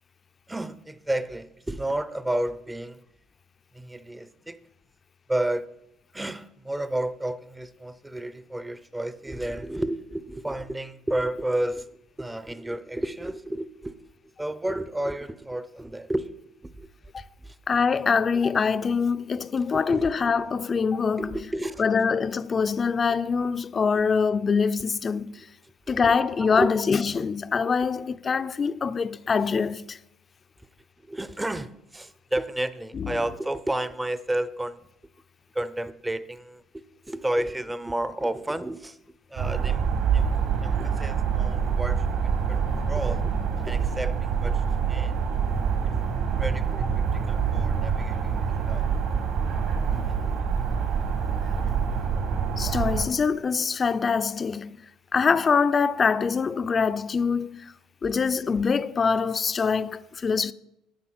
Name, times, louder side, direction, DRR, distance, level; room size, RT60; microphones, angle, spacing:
voice 1, 0.5-3.0 3.7-4.6 5.3-5.7 6.1-11.9 12.2-14.0 14.4-16.3 16.6-16.9 17.4-17.5 19.7-20.2 21.2-21.9 25.9-26.7 31.1-34.8 35.5-36.6 37.0-39.0 39.3-39.8 40.1-40.3 40.6-43.3 43.6-44.6 44.9-45.1 46.4-48.9, right 1 dB, 10° right, 0.7 m, -31 dB
voice 2, 17.7-21.4 21.8-25.5 25.9-30.0 32.9-33.1 52.6-54.8 55.1-57.7 58.0-60.5, left 5 dB, 30° left, 0.6 m, -24 dB
sound 1, 39.4-53.1, right 6 dB, 65° right, 3.8 m, -26 dB
10.5 x 9.3 x 7.5 m
cardioid pair, 115°, 0 cm